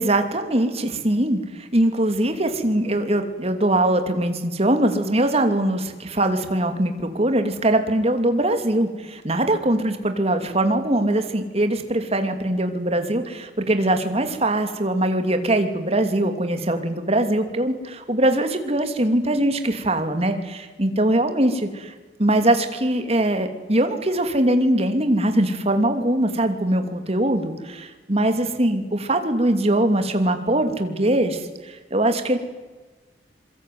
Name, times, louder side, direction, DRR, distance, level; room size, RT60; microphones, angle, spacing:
voice 1, 0.0-21.9 22.2-32.4, right 1 dB, 35° right, 7 dB, 2.8 m, -22 dB
26.0 x 23.0 x 9.4 m, 1.2 s
head